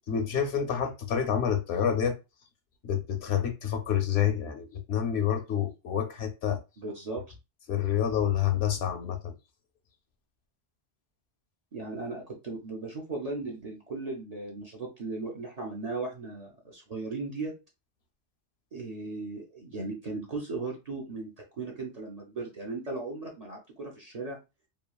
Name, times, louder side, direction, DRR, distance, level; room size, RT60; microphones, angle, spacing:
voice 1, 0.1-2.2 2.8-6.6 7.7-9.3, left 9 dB, 70° left, 0.8 m, -28 dB
voice 2, 6.8-7.2 11.7-17.5 18.7-24.4, right 3 dB, 45° right, 0.5 m, -37 dB
3.0 x 2.4 x 2.2 m
omnidirectional pair, 1.2 m